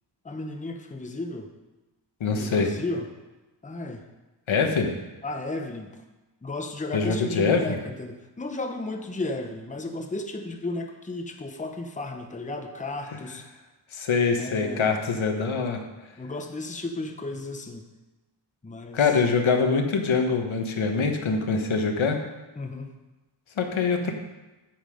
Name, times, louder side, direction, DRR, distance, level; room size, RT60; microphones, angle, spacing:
voice 1, 0.2-1.5 2.4-3.1 3.6-4.0 5.2-5.9 6.4-13.5 14.4-15.0 16.2-17.9 18.6-19.0 22.6-22.9, left 2 dB, 15° left, 4 dB, 0.8 m, -34 dB
voice 2, 2.2-2.7 4.5-4.9 6.9-7.8 13.9-15.8 18.9-22.2 23.6-24.1, left 5 dB, 80° left, 4 dB, 1.3 m, -24 dB
9.1 x 7.3 x 5.0 m, 1.1 s
wide cardioid pair, 115°, 47 cm